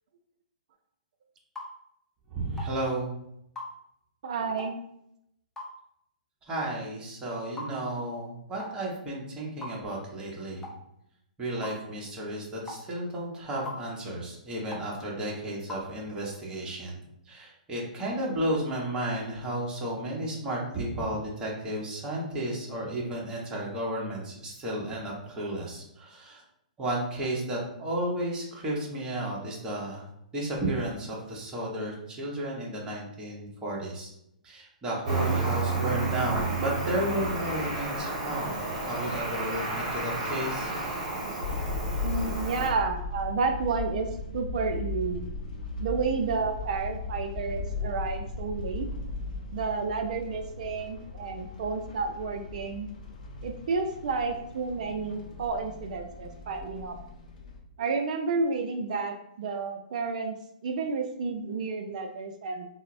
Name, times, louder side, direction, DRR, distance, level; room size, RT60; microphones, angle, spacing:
sound 1, 1.6-1.7 2.6-2.7 3.6-3.7 4.6-4.8 5.6-5.7 6.6-6.8 7.6-7.7 8.6-8.8 9.6-9.8 10.6-10.8 11.6-11.8 12.7-12.8 13.7-13.8 14.7-14.9 15.7-15.9, left 2 dB, 10° left, 0.5 m, -39 dB
voice 1, 2.3-3.1 6.5-10.7 11.4-17.0 17.3-26.4 26.8-30.1 30.3-34.1 34.4-40.7, right 1 dB, 15° right, -4 dB, 0.9 m, -33 dB
voice 2, 4.2-4.8 42.0-45.2 45.8-48.9 49.5-52.9 53.4-57.0 57.8-60.3 60.6-62.7, right 4 dB, 60° right, 6 dB, 0.4 m, -31 dB
Cricket, 35.1-42.7, right 2 dB, 35° right, 1.3 m, -31 dB
sound 2, 41.4-57.6, left 3 dB, 60° left, 0.6 m, -37 dB
3.9 x 2.0 x 2.5 m, 0.78 s
hypercardioid pair, 130°, 4 cm